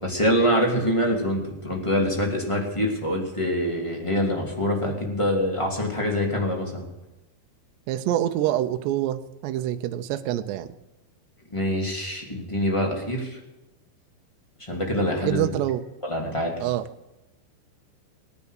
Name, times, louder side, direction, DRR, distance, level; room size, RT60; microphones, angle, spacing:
voice 1, 0.0-6.9 11.5-13.4 14.6-15.4 16.0-16.5, equal, 15° left, 0 dB, 1.3 m, -25 dB
voice 2, 7.9-10.7 15.2-15.8 16.6-16.9, right 12 dB, 80° right, 8 dB, 2.8 m, -26 dB
21.0 x 10.0 x 6.6 m, 1.0 s
omnidirectional pair, 5.3 m